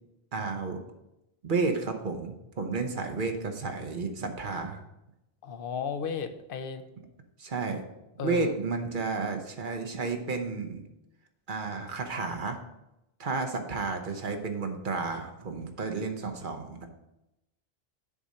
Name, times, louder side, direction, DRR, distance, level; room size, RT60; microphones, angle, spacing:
voice 1, 0.3-0.8 1.4-4.8 7.4-7.8 8.2-10.8 11.5-12.6 13.2-16.9, right 4 dB, 55° right, 6 dB, 1.0 m, -32 dB
voice 2, 5.4-6.8 8.2-8.5, left 6 dB, 60° left, 9 dB, 0.8 m, -34 dB
7.2 x 4.2 x 6.3 m, 0.91 s
omnidirectional pair, 1.1 m